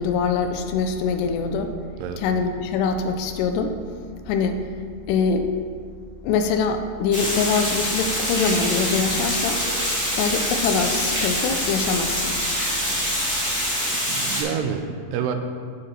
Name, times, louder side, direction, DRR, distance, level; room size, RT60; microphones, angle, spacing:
voice 1, 0.0-1.7 2.2-3.7 4.3-4.6 5.1-5.5 6.2-9.6 10.2-12.4, left 5 dB, 85° left, 6 dB, 2.8 m, -23 dB
Water, 7.1-14.4, equal, 5° left, 1.8 m, -25 dB
voice 2, 14.1-15.4, right 7 dB, 85° right, 6 dB, 2.7 m, -28 dB
9.9 x 7.8 x 4.5 m, 2.1 s
omnidirectional pair, 4.8 m